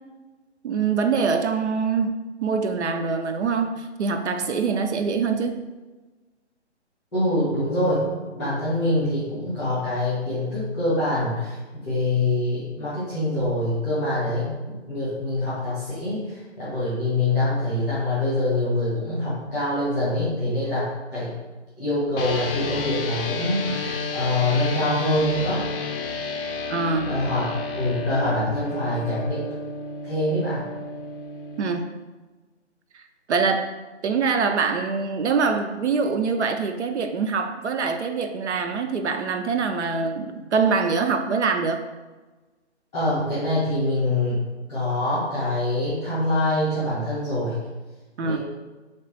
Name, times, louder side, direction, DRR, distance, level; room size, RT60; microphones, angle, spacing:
voice 1, 0.6-5.6 26.7-27.1 31.6-32.0 32.9-33.0 33.3-33.7 34.0-41.9 48.2-48.4, right 5 dB, 75° right, 6 dB, 0.5 m, -24 dB
voice 2, 7.1-21.3 21.8-25.6 27.0-27.5 27.7-29.5 30.0-30.7 42.9-47.6 48.2-48.4, left 1 dB, 5° left, -15 dB, 0.6 m, -25 dB
sound 1, 22.2-31.6, left 3 dB, 55° left, 0.5 m, -31 dB
3.4 x 2.9 x 3.3 m, 1.2 s
hypercardioid pair, 160°, 35 cm